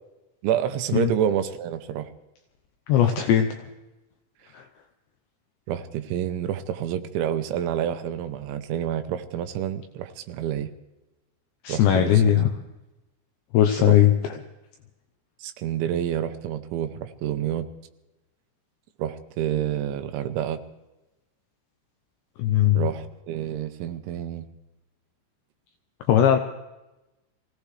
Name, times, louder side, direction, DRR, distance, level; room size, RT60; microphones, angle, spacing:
voice 1, 0.4-2.1 5.7-10.7 11.7-12.5 13.9-14.0 15.4-17.7 19.0-20.6 22.7-24.5, right 10 dB, 80° right, 8 dB, 2.9 m, -28 dB
voice 2, 2.9-3.5 4.5-4.6 11.6-12.5 13.5-14.1 22.4-22.9 26.1-26.4, left 11 dB, 80° left, 5 dB, 2.6 m, -18 dB
24.5 x 17.0 x 3.3 m, 1.0 s
omnidirectional pair, 6.0 m